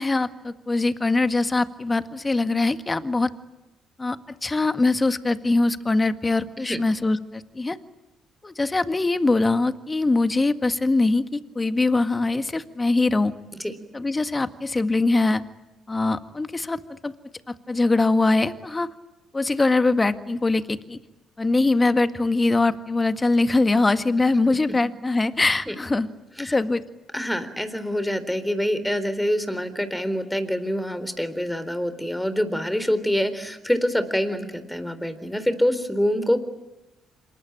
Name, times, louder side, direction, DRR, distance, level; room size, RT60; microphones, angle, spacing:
voice 1, 0.0-3.3 4.0-7.8 8.4-11.2 11.6-13.3 13.9-15.4 15.9-17.1 17.7-18.9 19.3-21.0 21.4-26.1 26.4-26.8, left 3 dB, 25° left, 11 dB, 1.8 m, -22 dB
voice 2, 27.1-36.4, equal, 5° left, 12 dB, 3.9 m, -25 dB
27.5 x 23.5 x 8.9 m, 0.99 s
hypercardioid pair, 50°, 0 cm